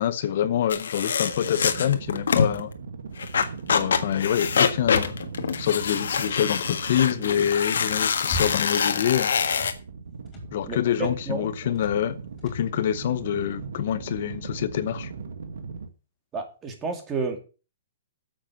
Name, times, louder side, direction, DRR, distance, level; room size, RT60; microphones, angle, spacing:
voice 1, 0.0-2.7 3.7-5.2 5.6-9.3 10.5-12.2 12.4-15.1, left 10 dB, 50° left, 0.8 m, -26 dB
sound 1, 0.7-2.6 3.2-9.7, left 6 dB, 85° left, 1.6 m, -25 dB
sound 2, 1.2-15.9, right 5 dB, 80° right, 1.7 m, -39 dB
sound 3, 4.8-6.2 7.7-8.9 9.2-9.8 10.3-10.6 10.9-11.3 11.7-12.1 12.4-12.7, equal, 20° left, 4.6 m, -38 dB
voice 2, 10.7-11.5 16.3-17.4, right 4 dB, 15° right, 2.2 m, -31 dB
9.0 x 7.6 x 7.4 m
hypercardioid pair, 165°, 0 cm